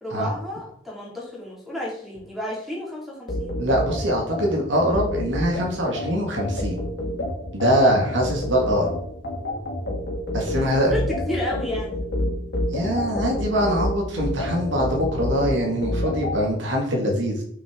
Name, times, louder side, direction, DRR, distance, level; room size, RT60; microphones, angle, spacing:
voice 1, 0.0-3.5 10.5-10.6 10.9-12.0, left 1 dB, ahead, -4 dB, 2.5 m, -31 dB
sound 1, 3.3-16.4, left 1 dB, 65° left, 1.8 m, -28 dB
voice 2, 3.6-6.8 7.5-8.9 10.3-10.9 12.7-17.4, equal, 85° right, 0 dB, 1.9 m, -23 dB
6.4 x 6.3 x 3.7 m, 0.66 s
head